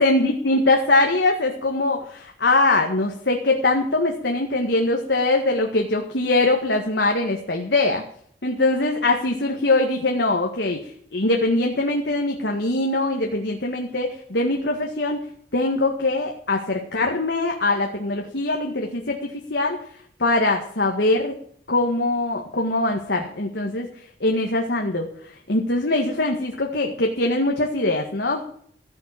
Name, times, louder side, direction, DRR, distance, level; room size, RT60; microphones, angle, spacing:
voice 1, 0.0-8.0 8.4-15.2 15.5-19.8 20.2-21.3 21.7-23.9 24.2-25.1 25.5-28.4, left 2 dB, 70° left, 2 dB, 1.8 m, -22 dB
15.5 x 7.7 x 8.9 m, 0.64 s
head